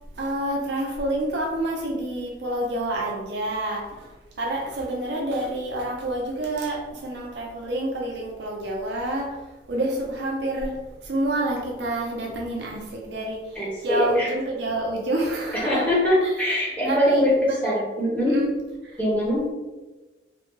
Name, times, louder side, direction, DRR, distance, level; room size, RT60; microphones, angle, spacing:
voice 1, 0.1-9.4 9.7-15.8 16.2-16.3 16.9-17.2 17.5-17.6 18.2-18.5 18.8-19.0, right 1 dB, 70° right, -1 dB, 0.6 m, -28 dB
voice 2, 13.5-14.3 15.5-18.4 19.0-19.5, left 1 dB, 10° left, -8 dB, 1.1 m, -22 dB
3.3 x 2.2 x 3.1 m, 1.2 s
head